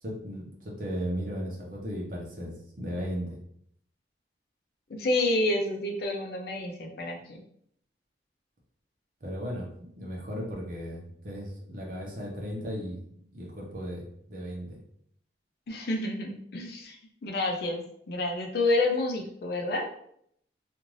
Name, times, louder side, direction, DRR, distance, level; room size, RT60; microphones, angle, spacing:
voice 1, 0.0-3.4 9.2-13.0 13.3-14.8, equal, 50° right, -1 dB, 0.8 m, -36 dB
voice 2, 4.9-7.4 15.7-17.0 17.2-19.9, left 2 dB, 60° left, 1 dB, 0.5 m, -29 dB
2.5 x 2.5 x 3.1 m, 0.68 s
head